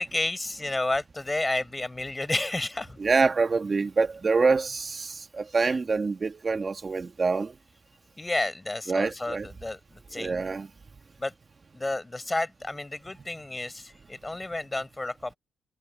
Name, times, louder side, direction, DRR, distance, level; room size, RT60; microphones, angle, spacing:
voice 1, 0.0-3.0 8.2-10.4 11.2-11.3 11.7-15.4, left 2 dB, 15° left, 4.8 m, -31 dB
voice 2, 3.0-7.5 8.9-9.5 10.1-10.7, right 4 dB, 35° right, 1.4 m, -26 dB
cardioid pair, 90°, 0 cm